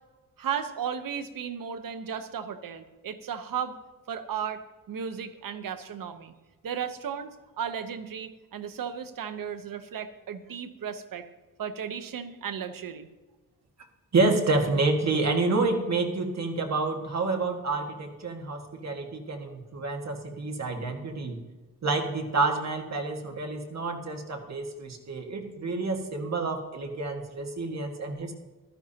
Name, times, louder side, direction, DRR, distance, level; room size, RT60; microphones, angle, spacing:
voice 1, 0.4-3.8 4.1-4.6 4.9-6.3 6.6-7.3 7.6-11.3 11.6-13.1, right 7 dB, 80° right, 9 dB, 1.0 m, -35 dB
voice 2, 14.1-21.4 21.8-28.3, right 3 dB, 55° right, 2 dB, 1.8 m, -28 dB
15.5 x 13.0 x 2.9 m, 1.2 s
wide cardioid pair, 110°, 33 cm